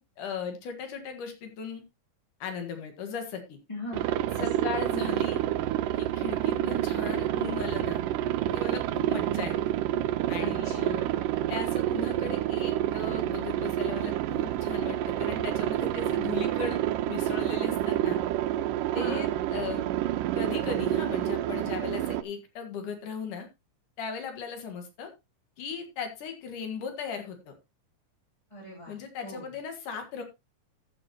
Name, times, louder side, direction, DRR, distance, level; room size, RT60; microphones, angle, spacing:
voice 1, 0.0-1.8 2.4-3.6 4.4-5.4 5.9-8.0 8.5-9.7 10.3-11.0 11.5-16.8 17.1-18.2 18.9-19.8 20.3-23.5 24.0-25.1 25.6-27.5 28.9-30.2, left 6 dB, 75° left, 6 dB, 3.3 m, -37 dB
voice 2, 3.7-4.7 10.4-11.2 18.9-19.3 28.5-29.0 29.2-29.5, left 1 dB, 10° left, -3 dB, 2.9 m, -40 dB
Aircraft, 3.9-22.2, right 13 dB, 85° right, 2.3 m, -28 dB
15.0 x 7.7 x 3.0 m, 0.24 s
omnidirectional pair, 3.7 m